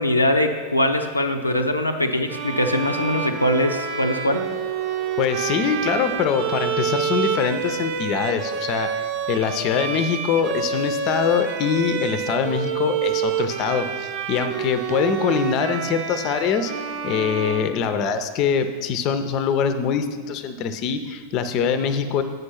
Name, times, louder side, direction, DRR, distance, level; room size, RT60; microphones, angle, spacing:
voice 1, 0.0-4.5, left 1 dB, 85° left, 4 dB, 0.5 m, -22 dB
Bowed string instrument, 2.3-18.3, right 7 dB, 50° right, 0.8 m, -28 dB
sound 1, 2.3-6.2, right 1 dB, 85° right, 0.8 m, -41 dB
voice 2, 5.2-16.7 17.0-22.2, left 7 dB, 40° left, 10 dB, 0.5 m, -23 dB
7.9 x 5.3 x 5.7 m, 1.5 s
figure-of-eight pair, 90°, 0 cm